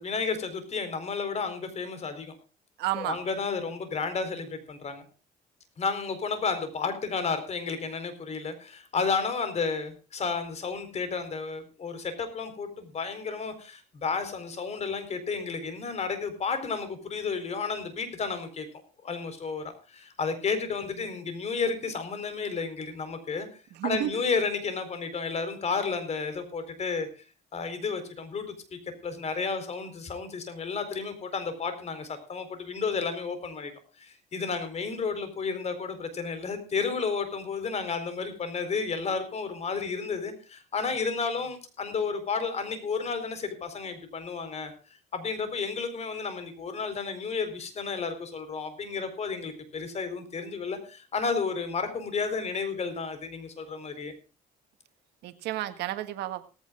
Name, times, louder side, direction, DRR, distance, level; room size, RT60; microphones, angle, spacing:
voice 1, 0.0-2.4 2.9-5.0 5.8-18.7 19.0-23.5 23.8-27.1 27.5-28.5 28.7-33.7 34.0-44.7 45.1-54.1, left 5 dB, 40° left, 10 dB, 4.2 m, -32 dB
voice 2, 2.8-3.2 23.7-24.3 55.2-56.4, right 14 dB, 85° right, 10 dB, 1.6 m, -32 dB
18.0 x 15.5 x 2.5 m, 0.34 s
cardioid pair, 110°, 17 cm